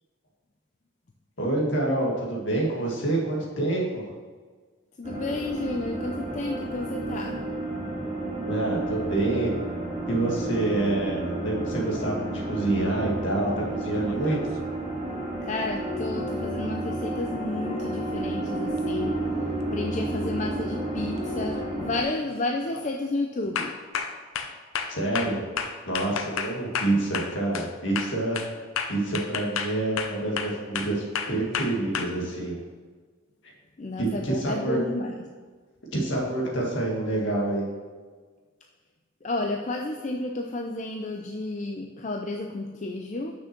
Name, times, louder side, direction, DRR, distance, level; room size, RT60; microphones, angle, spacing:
voice 1, 1.4-4.1 8.5-9.5 10.1-14.6 24.9-25.4 25.9-28.6 28.9-32.5 34.0-34.8 35.9-37.7, right 2 dB, 65° left, -2 dB, 2.0 m, -27 dB
voice 2, 5.0-7.4 15.4-19.2 19.7-23.7 33.8-35.2 39.2-43.3, left 2 dB, 35° left, 2 dB, 0.4 m, -31 dB
sound 1, 5.0-22.0, right 2 dB, 35° right, 2.4 m, -31 dB
sound 2, 13.8-14.6 18.8-18.9 20.4-20.7 21.1-21.5 21.9-22.3 22.7-22.9 23.6-27.7 28.0-32.1, left 6 dB, 85° left, 0.6 m, -32 dB
6.1 x 6.1 x 5.9 m, 1.5 s
head